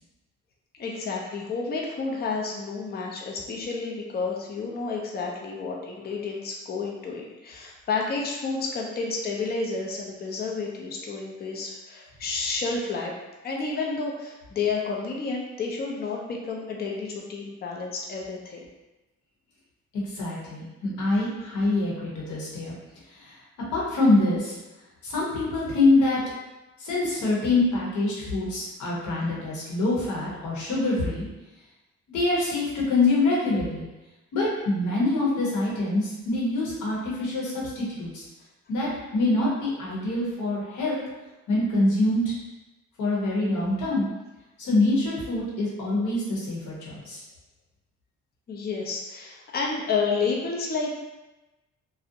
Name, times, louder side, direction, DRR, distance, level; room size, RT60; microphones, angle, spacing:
voice 1, 0.8-13.1 13.4-18.7 48.5-50.9, left 4 dB, 35° left, -1 dB, 0.5 m, -30 dB
voice 2, 19.9-22.8 23.1-23.4 23.7-24.6 25.0-26.2 26.8-31.3 32.1-33.9 34.3-38.3 38.7-41.0 41.5-42.3 43.0-44.1 44.6-47.2, left 2 dB, 80° left, -5 dB, 1.0 m, -25 dB
2.5 x 2.0 x 2.7 m, 1.0 s
cardioid pair, 90°, 30 cm